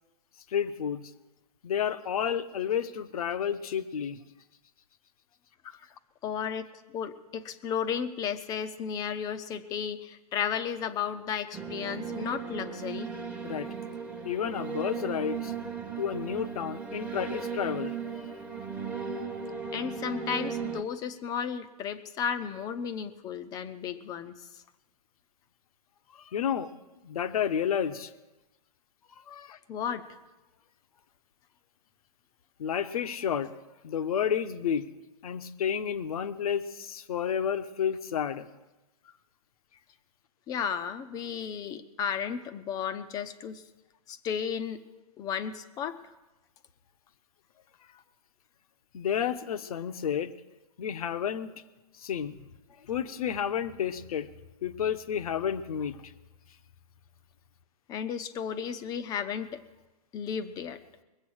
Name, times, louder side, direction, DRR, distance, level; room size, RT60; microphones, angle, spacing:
voice 1, 0.5-1.1 1.6-4.2 13.4-13.7 14.2-15.5 16.0-18.4 26.1-26.7 27.0-28.1 29.3-29.6 32.6-33.5 33.8-34.9 35.2-38.5 47.9-48.0 48.9-50.3 50.8-51.5 51.9-52.3 52.8-54.3 54.6-56.1, left 8 dB, 65° left, 12 dB, 1.1 m, -31 dB
voice 2, 6.2-13.1 19.7-24.6 29.7-30.1 40.5-43.6 44.1-44.8 45.2-46.0 57.9-59.6 60.1-60.8, left 7 dB, 20° left, 11 dB, 0.7 m, -34 dB
sound 1, 11.5-20.8, right 6 dB, 5° right, 1.1 m, -36 dB
21.5 x 8.2 x 6.3 m, 1.1 s
hypercardioid pair, 150°, 20 cm